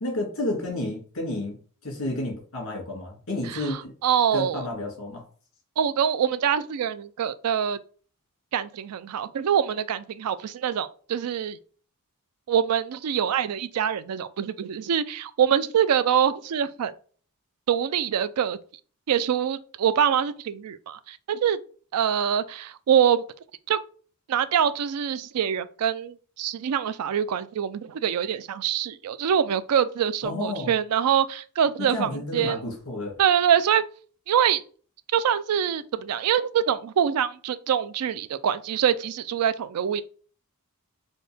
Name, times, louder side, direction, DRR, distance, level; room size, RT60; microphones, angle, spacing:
voice 1, 0.0-1.6 1.8-3.9 4.3-5.2 30.2-30.7 31.8-33.1, left 2 dB, 60° left, 1.9 m, -31 dB
voice 2, 3.5-4.6 5.8-7.8 8.5-11.6 12.5-16.9 17.7-18.6 19.1-21.6 21.9-23.2 23.7-23.8 24.3-32.6 33.2-33.8 34.3-34.6 35.1-40.0, right 8 dB, 85° right, 0.4 m, -24 dB
4.2 x 2.7 x 3.4 m
head